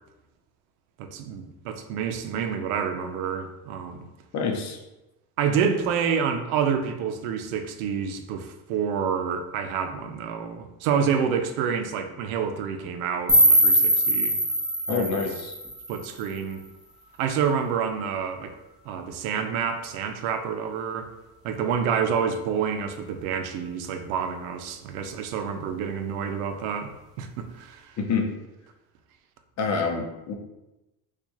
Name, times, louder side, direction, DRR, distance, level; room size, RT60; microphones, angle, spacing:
voice 1, 1.0-4.1 5.4-14.4 14.9-15.2 15.9-16.6 17.2-18.6 18.8-21.1 21.4-27.9, right 7 dB, 90° right, 7 dB, 0.6 m, -28 dB
voice 2, 4.3-4.8 14.9-15.5 28.0-28.3 29.6-30.3, left 5 dB, 40° left, 3 dB, 0.7 m, -27 dB
sound 1, 13.3-16.3, right 1 dB, ahead, 0.8 m, -21 dB
4.4 x 2.4 x 2.8 m, 0.98 s
supercardioid pair, 110°, 41 cm